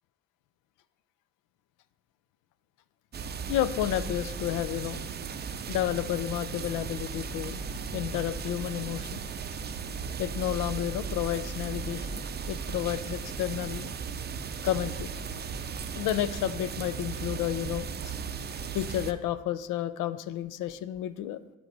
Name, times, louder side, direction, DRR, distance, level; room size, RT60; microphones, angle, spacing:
sound 1, 3.1-19.1, right 5 dB, 35° right, 0.5 m, -36 dB
voice 1, 3.5-5.0 5.7-7.6 7.9-9.2 10.2-13.9 14.6-15.1 16.0-18.1 18.7-21.4, left 12 dB, 90° left, 15 dB, 0.5 m, -31 dB
11.5 x 4.7 x 3.9 m, 1.2 s
cardioid pair, 90°, 30 cm